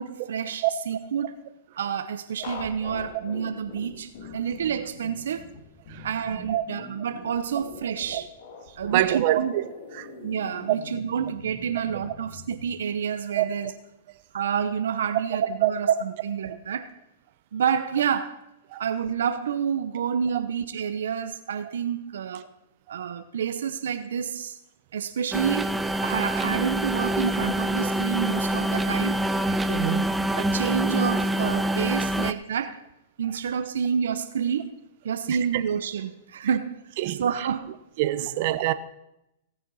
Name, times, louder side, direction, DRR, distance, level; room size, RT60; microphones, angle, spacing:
voice 1, 0.0-1.3 1.8-5.5 6.0-8.3 8.8-9.5 10.2-13.7 14.3-16.9 17.5-18.4 18.8-22.4 22.9-24.6 24.9-25.7 26.0-29.2 30.3-32.8 33.2-34.7 35.0-36.8 37.2-37.7 38.2-38.3, right 7 dB, 80° right, 0.8 m, -28 dB
sound 1, 2.4-12.6, left 3 dB, 55° left, 2.4 m, -43 dB
voice 2, 8.8-9.6 9.9-10.1 10.7-10.8 13.4-13.5 15.6-15.7 16.5-16.6 18.7-18.8 29.5-30.1 35.3-35.4 37.0-37.3 38.0-38.7, right 15 dB, 50° right, 0.9 m, -25 dB
sound 2, 25.3-32.3, right 1 dB, 5° right, 0.5 m, -26 dB
17.5 x 6.8 x 5.6 m
hypercardioid pair, 130°, 0 cm